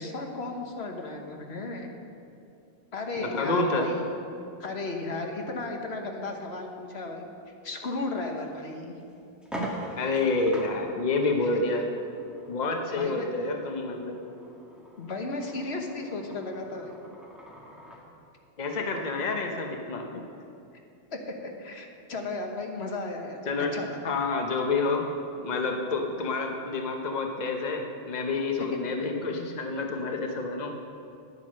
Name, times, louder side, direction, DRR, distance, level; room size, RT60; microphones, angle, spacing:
voice 1, 0.0-1.9 2.9-4.2 4.6-7.3 7.6-8.9 11.4-11.6 13.0-13.3 15.0-16.9 21.1-24.0, left 2 dB, 70° left, 2 dB, 1.4 m, -35 dB
voice 2, 3.2-3.9 10.0-11.8 12.5-14.1 18.6-20.2 23.5-23.8 24.0-25.1 25.4-30.7, left 3 dB, 45° left, 3 dB, 1.0 m, -28 dB
sound 1, 8.4-8.6 9.0-9.1 9.4-18.1, right 1 dB, ahead, 1.5 m, -43 dB
9.9 x 9.4 x 6.4 m, 2.5 s
omnidirectional pair, 1.1 m